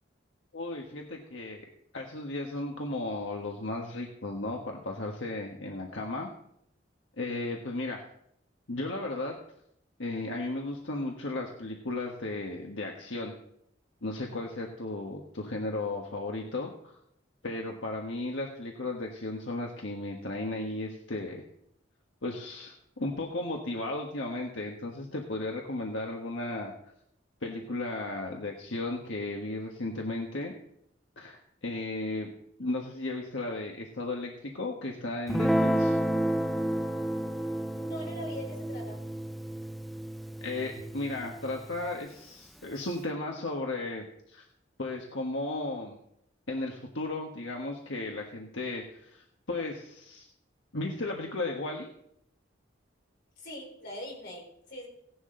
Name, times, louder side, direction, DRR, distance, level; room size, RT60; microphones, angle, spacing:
voice 1, 0.5-1.6 1.9-6.3 7.2-8.0 8.7-9.4 10.0-13.3 14.0-17.0 17.4-21.4 22.2-26.7 27.4-30.5 31.2-32.3 32.6-36.0 40.4-44.4 44.8-46.0 46.5-50.3 50.7-51.9, left 2 dB, 85° left, 0 dB, 1.5 m, -35 dB
Guitar, 35.3-41.9, right 1 dB, ahead, 0.4 m, -31 dB
voice 2, 37.8-39.0 53.4-54.9, equal, 60° left, 0 dB, 4.4 m, -42 dB
16.5 x 11.0 x 3.9 m, 0.73 s
head